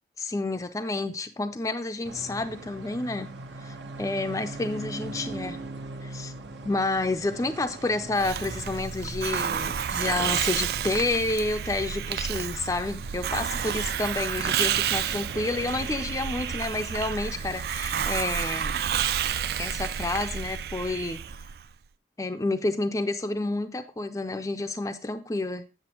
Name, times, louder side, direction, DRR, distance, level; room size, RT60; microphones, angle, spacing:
voice 1, 0.2-3.3 3.6-5.6 6.0-6.3 6.6-18.8 19.6-21.2 22.2-25.6, left 2 dB, 20° left, 0.4 m, -29 dB
sound 1, 2.0-21.4, right 2 dB, 80° right, 0.9 m, -43 dB
Hiss, 8.2-21.7, right 8 dB, 60° right, 0.3 m, -30 dB
7.9 x 7.4 x 2.9 m
head